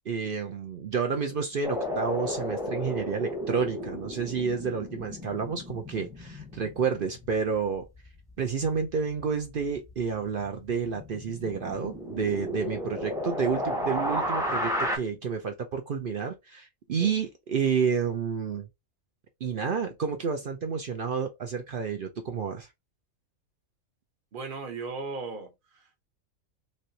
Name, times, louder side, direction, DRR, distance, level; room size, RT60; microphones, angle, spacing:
voice 1, 0.1-7.9 8.4-18.7 19.4-22.7, right 6 dB, 60° right, 0.5 m, -30 dB
sound 1, 1.6-8.8 9.2-9.3 9.6-15.0, equal, 5° right, 0.6 m, -33 dB
voice 2, 24.3-26.0, right 4 dB, 45° right, 0.9 m, -37 dB
3.1 x 2.9 x 2.7 m
omnidirectional pair, 1.5 m